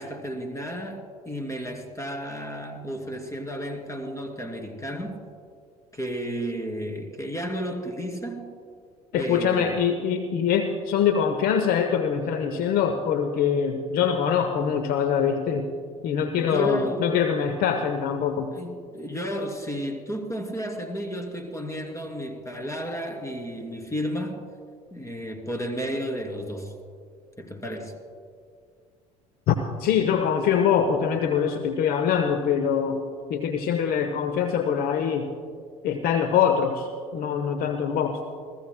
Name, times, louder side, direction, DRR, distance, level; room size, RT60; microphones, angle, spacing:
voice 1, 0.0-5.2 5.9-8.5 9.1-9.8 16.4-17.1 18.5-24.4 24.9-26.7 27.4-27.9, equal, 15° left, 5 dB, 2.6 m, -32 dB
voice 2, 9.1-15.7 16.0-18.5 29.5-33.0 33.3-35.3 35.8-38.2, left 7 dB, 55° left, 7 dB, 0.9 m, -24 dB
29.5 x 15.0 x 2.2 m, 2.1 s
hypercardioid pair, 65°, 19 cm